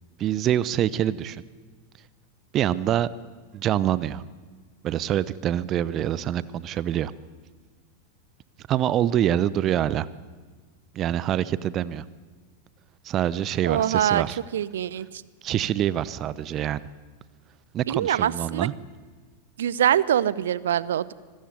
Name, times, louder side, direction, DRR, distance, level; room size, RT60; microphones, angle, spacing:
voice 1, 0.2-1.4 2.5-3.1 3.5-4.2 4.8-7.1 8.7-10.1 10.9-12.0 13.0-14.4 15.4-16.8 17.7-18.7, right 11 dB, 30° right, 18 dB, 0.9 m, -25 dB
voice 2, 13.6-14.2 14.5-15.2 17.9-18.7 19.6-21.1, right 10 dB, 60° right, 20 dB, 0.9 m, -24 dB
25.0 x 19.5 x 9.7 m, 1.4 s
figure-of-eight pair, 90°, 0 cm